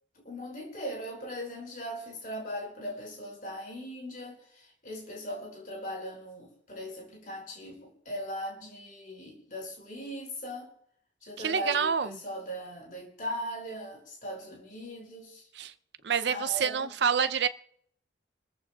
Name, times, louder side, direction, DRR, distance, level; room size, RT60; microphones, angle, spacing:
voice 1, 0.2-10.7 11.2-15.5 16.2-16.9, equal, 45° left, 5.7 m, -39 dB
voice 2, 11.4-12.2 15.5-15.7 16.0-17.5, right 7 dB, 70° right, 0.6 m, -27 dB
28.5 x 14.5 x 2.3 m
head